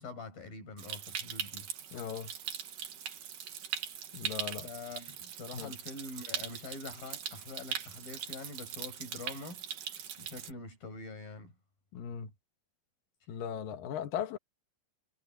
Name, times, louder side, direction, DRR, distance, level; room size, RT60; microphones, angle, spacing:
voice 1, 0.0-1.7 4.6-9.6 10.2-11.5, left 3 dB, 45° left, 9.3 m, -45 dB
Stream, 0.8-10.5, right 8 dB, 55° right, 2.6 m, -41 dB
voice 2, 1.9-2.3 4.1-4.7 5.5-5.7 11.9-12.3 13.3-14.4, left 8 dB, 65° left, 2.3 m, -38 dB
omnidirectional pair, 5.9 m